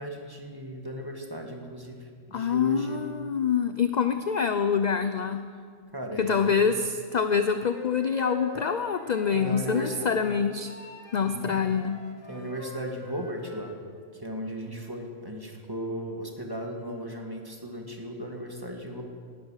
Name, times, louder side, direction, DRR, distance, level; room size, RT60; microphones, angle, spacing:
voice 1, 0.0-3.0 5.9-6.8 9.3-10.0 11.2-11.6 12.3-13.8 14.1-19.0, equal, 15° right, 1 dB, 2.0 m, -36 dB
voice 2, 2.3-5.4 6.2-10.7 11.1-12.0, left 6 dB, 50° left, 9 dB, 0.5 m, -26 dB
Wind instrument woodwind instrument, 7.5-10.3 10.6-13.8, left 2 dB, 75° left, 2.4 m, -44 dB
19.0 x 11.5 x 6.5 m, 2.1 s
omnidirectional pair, 1.3 m